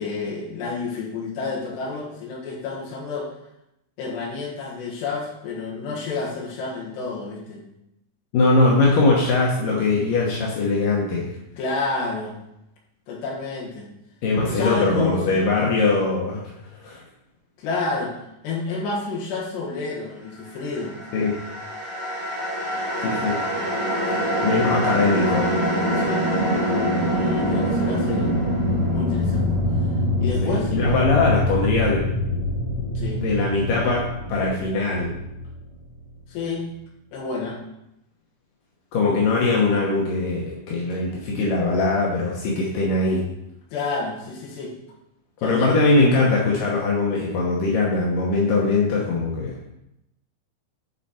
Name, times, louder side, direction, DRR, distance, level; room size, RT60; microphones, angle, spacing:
voice 1, 0.0-3.3 4.0-7.6 11.6-12.4 13.1-13.9 14.5-15.7 17.6-18.1 18.4-21.0 24.1-24.4 25.9-26.3 27.1-28.4 28.9-29.5 30.2-30.7 33.0-33.2 36.3-36.7 37.1-37.6 43.7-44.7 45.4-45.7, left 3 dB, 70° left, -3 dB, 3.4 m, -29 dB
voice 2, 8.3-11.4 14.2-17.0 21.1-21.3 23.0-23.4 24.4-25.5 30.4-32.0 33.2-34.0 34.3-35.1 38.9-43.3 45.4-49.6, left 3 dB, 90° left, -3 dB, 1.9 m, -21 dB
sound 1, 21.0-36.2, equal, 20° left, 1.3 m, -24 dB
9.9 x 4.3 x 4.2 m, 0.84 s
omnidirectional pair, 5.5 m